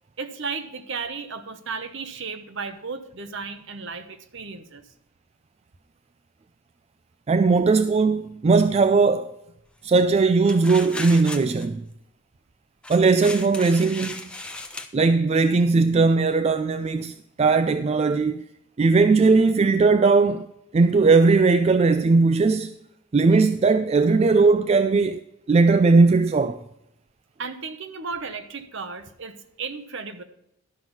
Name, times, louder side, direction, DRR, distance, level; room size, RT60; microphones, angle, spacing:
voice 1, 0.2-4.8 27.4-30.2, right 4 dB, 60° right, 1.0 m, -34 dB
voice 2, 7.3-9.3 9.8-11.9 12.9-14.3 14.9-18.4 18.8-20.5 20.7-22.7 23.1-25.2 25.5-26.6, right 4 dB, 30° right, 0.3 m, -19 dB
sound 1, 10.5-11.7 12.8-14.9, left 2 dB, 5° left, 0.7 m, -36 dB
12.0 x 6.1 x 5.5 m
head